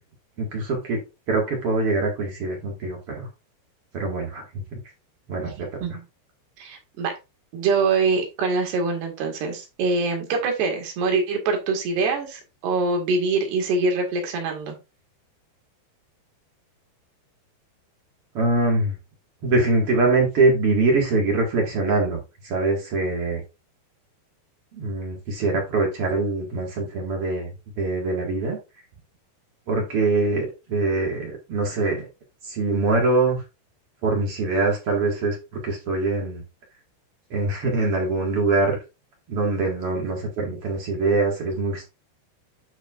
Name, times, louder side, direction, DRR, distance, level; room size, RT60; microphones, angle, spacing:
voice 1, 0.4-1.0 1.3-3.3 3.9-4.6 5.3-5.5 18.3-18.9 19.4-22.2 22.4-23.4 24.7-28.6 29.7-32.1 32.4-33.4 34.0-35.4 35.6-36.4 37.3-38.8 39.3-41.8, right 3 dB, 45° right, 1 dB, 2.1 m, -23 dB
voice 2, 6.6-7.1 7.5-14.8, right 4 dB, 70° right, 2 dB, 3.9 m, -24 dB
9.7 x 6.0 x 2.5 m, 0.26 s
omnidirectional pair, 5.0 m